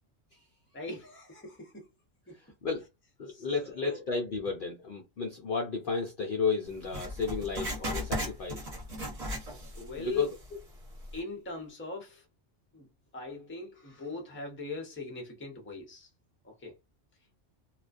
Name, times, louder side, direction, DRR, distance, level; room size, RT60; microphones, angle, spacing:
voice 1, 0.7-1.9 2.3-2.4 3.3-4.0 9.8-10.3 11.1-12.3 12.7-12.9 13.1-16.1 16.4-16.8, left 3 dB, 15° left, 0.6 m, -41 dB
voice 2, 3.2-8.6 10.0-10.3, left 5 dB, 55° left, 0.6 m, -32 dB
Writing, 6.9-9.9 10.2-10.3 11.0-11.1, equal, 35° right, 1.0 m, -36 dB
2.3 x 2.2 x 2.4 m
omnidirectional pair, 1.3 m